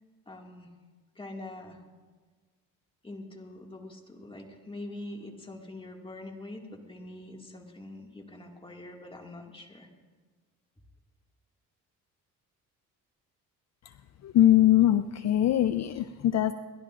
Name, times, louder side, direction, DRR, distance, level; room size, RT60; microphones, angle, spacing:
voice 1, 0.3-0.7 1.2-1.8 3.0-9.9, left 2 dB, 15° left, 1 dB, 2.1 m, -44 dB
voice 2, 14.2-16.5, left 12 dB, 50° left, 11 dB, 0.5 m, -22 dB
29.0 x 11.5 x 2.5 m, 1.4 s
cardioid pair, 90°, 34 cm